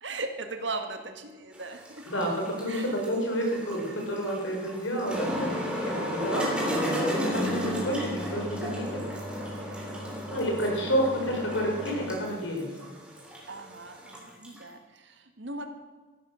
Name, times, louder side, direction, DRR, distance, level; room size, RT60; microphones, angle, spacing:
voice 1, 0.0-2.0 2.7-3.0 10.1-10.6 13.5-15.7, right 3 dB, 70° right, 6 dB, 1.8 m, -38 dB
sound 1, 1.5-14.6, equal, 5° right, 3.2 m, -33 dB
voice 2, 2.1-9.0 10.3-12.7, equal, 85° left, 1 dB, 4.7 m, -30 dB
14.0 x 12.0 x 6.4 m, 1.4 s
head